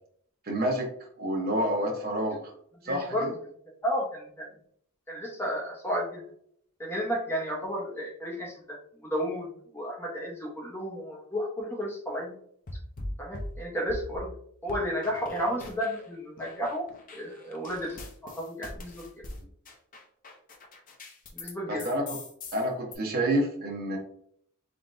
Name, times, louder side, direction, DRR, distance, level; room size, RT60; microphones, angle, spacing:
voice 1, 0.5-0.9 1.2-2.5 2.8-3.3 21.7-22.2 22.5-24.0, right 1 dB, 45° right, -1 dB, 1.1 m, -28 dB
voice 2, 2.8-3.3 3.8-4.5 5.1-6.2 6.8-12.4 13.2-14.3 14.6-16.8 17.1-19.2 21.3-21.9, equal, 10° left, -2 dB, 1.0 m, -32 dB
sound 1, 12.7-14.3 14.7-16.1 16.4-21.5 21.8-22.9, left 1 dB, 40° left, 0.7 m, -41 dB
3.7 x 3.7 x 2.6 m, 0.65 s
head